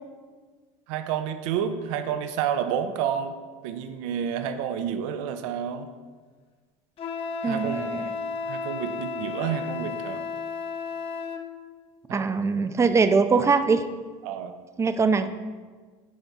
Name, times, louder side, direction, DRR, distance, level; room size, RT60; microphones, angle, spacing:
voice 1, 0.9-3.4 3.6-5.9 7.4-7.8 8.5-10.2 12.1-12.2 14.2-14.5, right 8 dB, 80° right, 9 dB, 0.5 m, -29 dB
Wind instrument woodwind instrument, 7.0-11.5, left 4 dB, 35° left, 0.7 m, -33 dB
voice 2, 7.4-8.1 12.1-13.8 14.8-15.3, right 4 dB, 15° right, 10 dB, 0.4 m, -22 dB
9.4 x 3.5 x 4.0 m, 1.4 s
supercardioid pair, 115°, 16 cm